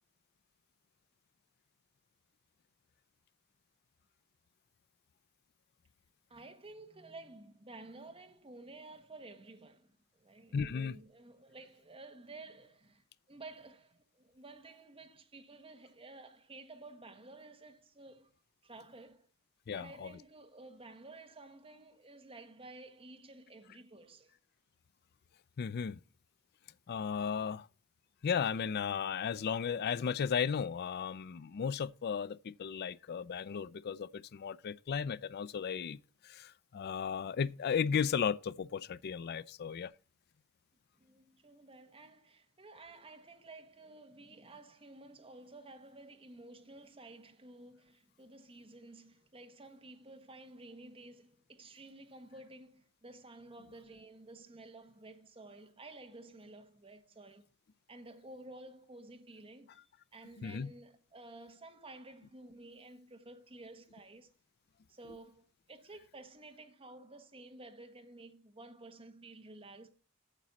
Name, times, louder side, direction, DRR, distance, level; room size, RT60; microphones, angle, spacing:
voice 1, 6.3-18.3 18.6-19.3 19.7-24.3 41.0-57.5 57.9-64.3 64.9-69.9, right 2 dB, 25° right, 1.3 m, -53 dB
voice 2, 10.5-11.0 19.7-20.1 25.6-26.0 26.9-27.7 28.2-36.0 36.2-39.9 60.4-60.7, left 7 dB, 45° left, 0.4 m, -35 dB
9.1 x 7.3 x 4.0 m
head